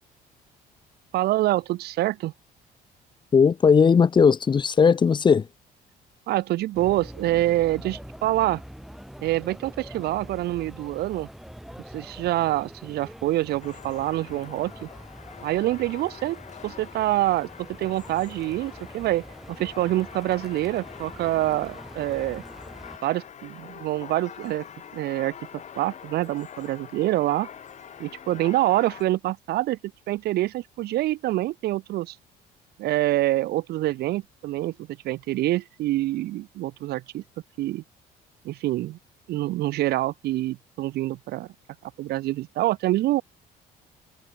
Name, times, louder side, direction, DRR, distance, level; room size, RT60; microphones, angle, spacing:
voice 1, 1.1-2.3 6.3-8.6 9.2-11.3 11.9-14.9 15.4-17.5 17.8-22.4 23.0-24.6 24.9-25.3 25.8-27.5 28.0-29.8 30.1-32.2 32.8-34.7 35.0-37.2 37.6-37.8 38.4-39.0 39.3-41.5 41.8-43.2, right 16 dB, 70° right, 0.9 m, -26 dB
voice 2, 3.3-5.5, left 6 dB, 25° left, 0.6 m, -18 dB
sound 1, 6.7-23.0, equal, ahead, 3.7 m, -44 dB
sound 2, 13.6-29.0, left 8 dB, 45° left, 2.5 m, -44 dB
cardioid pair, 110°, 17 cm